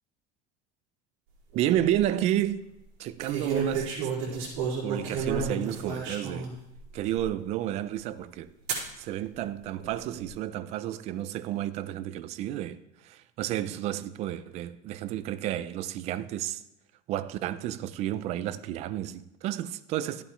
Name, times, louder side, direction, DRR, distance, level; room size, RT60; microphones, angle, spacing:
voice 1, 1.5-2.7 3.0-4.5 4.8-6.5 6.9-8.5 9.0-16.6 17.1-20.2, right 12 dB, 45° right, 0.5 m, -31 dB
sound 1, 1.5-2.0 3.2-6.5 7.2-7.3 8.7-8.9 9.8-10.3, right 5 dB, 70° right, 4.5 m, -31 dB
13.5 x 8.6 x 3.2 m
cardioid pair, 165°, 16 cm